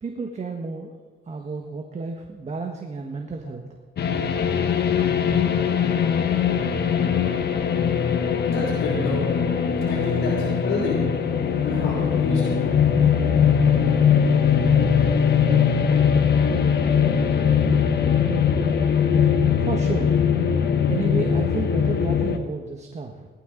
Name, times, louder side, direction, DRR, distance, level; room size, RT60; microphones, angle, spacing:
voice 1, 0.0-0.9 1.3-3.6 19.6-20.2 20.9-23.3, right 4 dB, 35° right, 2 dB, 1.4 m, -31 dB
sound 1, 4.0-22.4, left 7 dB, 55° left, 1.2 m, -21 dB
voice 2, 8.5-9.3 9.8-11.1 11.6-12.7, left 3 dB, 80° left, -6 dB, 3.5 m, -29 dB
18.5 x 12.0 x 3.9 m, 1.4 s
cardioid pair, 90°, 20 cm